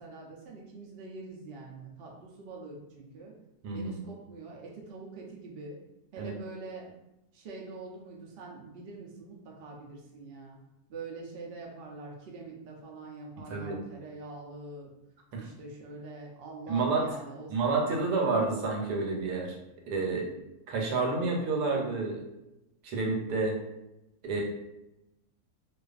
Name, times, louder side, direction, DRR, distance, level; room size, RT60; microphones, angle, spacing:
voice 1, 0.0-3.3 3.7-5.8 6.1-6.9 7.3-10.6 10.9-14.9 15.3-17.5 18.0-18.3, right 3 dB, 75° right, -1 dB, 0.5 m, -44 dB
voice 2, 3.6-4.0 6.2-6.3 13.4-13.8 15.3-15.4 16.7-17.0 17.5-19.6 19.9-20.3 20.7-22.2 22.8-23.6 24.2-24.4, right 3 dB, 90° right, 0 dB, 1.2 m, -29 dB
2.4 x 2.4 x 2.3 m, 0.93 s
omnidirectional pair, 1.7 m